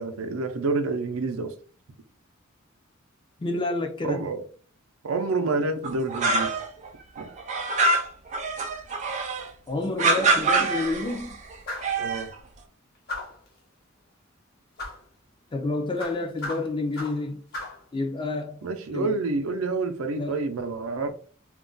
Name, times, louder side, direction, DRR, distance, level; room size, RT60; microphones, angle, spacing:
voice 1, 0.0-1.5 4.0-4.4 5.0-6.5 7.2-7.3 12.0-12.3 18.6-21.1, right 3 dB, 85° right, 0.5 m, -28 dB
voice 2, 3.4-4.3 9.7-11.4 15.5-17.4 17.9-18.6 18.9-19.1 20.1-20.4, left 2 dB, 25° left, 0.4 m, -29 dB
sound 1, 5.8-6.9 7.2-9.5 10.0-11.3 11.7-12.3, right 3 dB, 35° right, 0.5 m, -25 dB
sound 2, 11.7-12.0 13.1-13.5 14.8-15.0 16.0-17.2 17.5-17.8, left 2 dB, 50° left, 0.9 m, -36 dB
2.4 x 2.2 x 3.8 m
head